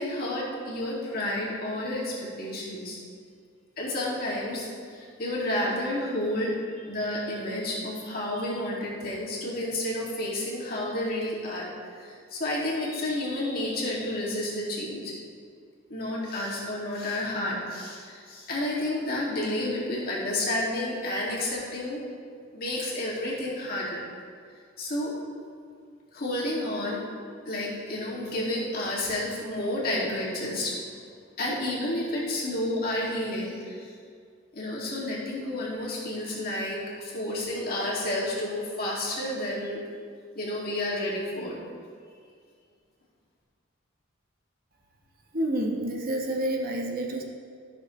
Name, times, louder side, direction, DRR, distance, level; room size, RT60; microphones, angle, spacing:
voice 1, 0.0-3.0 3.8-15.1 15.9-22.0 22.5-24.0 24.8-25.2 26.1-27.0 27.4-30.7 31.4-33.9 34.5-39.8 40.3-41.6, left 1 dB, 50° left, -5 dB, 2.3 m, -30 dB
voice 2, 45.3-47.2, right 1 dB, 50° right, 1 dB, 1.0 m, -28 dB
13.5 x 6.5 x 3.2 m, 2.1 s
head